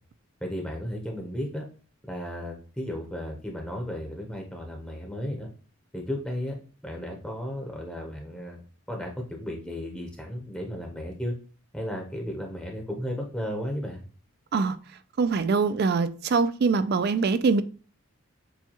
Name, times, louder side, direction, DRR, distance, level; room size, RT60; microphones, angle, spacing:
voice 1, 0.4-1.6 2.1-5.5 5.9-6.6 6.8-8.6 8.9-11.3 11.7-14.0, equal, 5° left, 0.7 m, -34 dB
voice 2, 15.2-17.6, right 4 dB, 45° right, 0.3 m, -23 dB
6.9 x 2.3 x 2.9 m
head